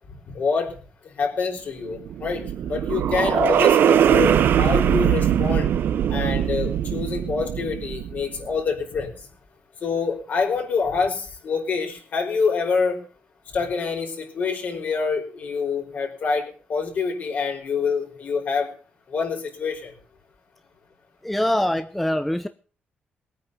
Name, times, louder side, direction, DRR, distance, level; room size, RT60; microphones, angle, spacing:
voice 1, 0.1-0.7 1.0-5.7 6.1-9.3 9.8-13.0 13.5-18.7 19.1-19.9, left 5 dB, 50° left, 2 dB, 4.9 m, -26 dB
sound 1, 1.9-8.4, right 9 dB, 70° right, 0.9 m, -21 dB
voice 2, 21.2-22.5, left 1 dB, 5° left, 10 dB, 0.6 m, -23 dB
20.5 x 9.1 x 6.9 m, 0.41 s
wide cardioid pair, 165°, 4 cm